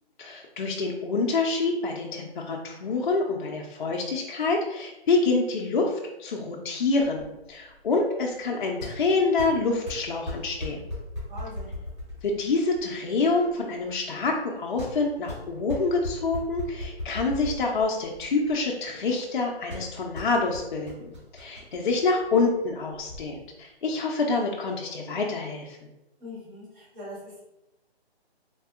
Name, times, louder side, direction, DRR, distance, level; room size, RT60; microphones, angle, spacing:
voice 1, 0.2-10.8 12.2-25.8, left 3 dB, 50° left, -1 dB, 0.4 m, -27 dB
sound 1, 7.0-23.2, left 1 dB, 25° right, 1.2 m, -39 dB
voice 2, 11.3-11.7 26.2-27.4, left 1 dB, 10° right, -10 dB, 0.9 m, -41 dB
3.6 x 2.6 x 2.3 m, 0.94 s
hypercardioid pair, 155°, 32 cm